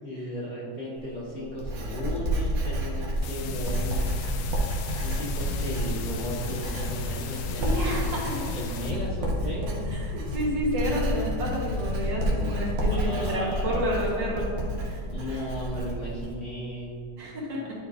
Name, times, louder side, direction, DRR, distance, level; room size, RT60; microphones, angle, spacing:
voice 1, 0.0-4.2 5.0-8.3 8.5-10.0 12.9-14.3 15.1-17.1, equal, 45° left, -7 dB, 1.2 m, -35 dB
Writing, 1.0-16.3, right 1 dB, 90° right, 1.9 m, -31 dB
sound 1, 3.2-8.9, left 8 dB, 85° left, 1.4 m, -40 dB
sound 2, 3.5-13.0, left 3 dB, 70° left, 0.8 m, -35 dB
voice 2, 7.6-8.4 9.9-14.5 14.8-15.0 15.3-15.4 17.2-17.6, equal, 65° right, -5 dB, 2.0 m, -30 dB
9.7 x 4.6 x 2.5 m, 2.3 s
omnidirectional pair, 2.2 m